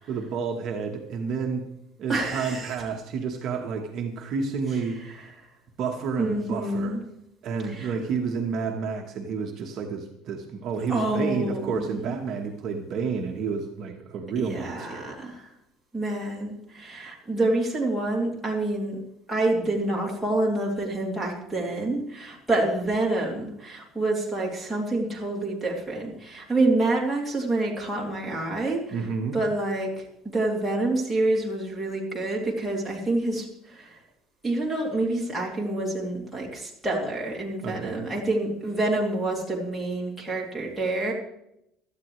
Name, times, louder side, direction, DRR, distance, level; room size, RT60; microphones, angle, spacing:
voice 1, 0.1-1.7 2.0-5.0 5.8-7.0 7.4-15.1 28.9-29.4 37.6-38.0, right 5 dB, 40° right, 1 dB, 1.1 m, -30 dB
voice 2, 2.1-2.8 5.0-5.1 6.2-7.0 7.7-7.9 10.9-12.2 14.4-15.5 15.9-19.0 19.3-29.0 29.3-30.1 30.3-34.0 34.4-41.1, right 2 dB, ahead, -5 dB, 2.7 m, -27 dB
17.0 x 12.5 x 3.1 m, 0.79 s
cardioid pair, 170°, 0 cm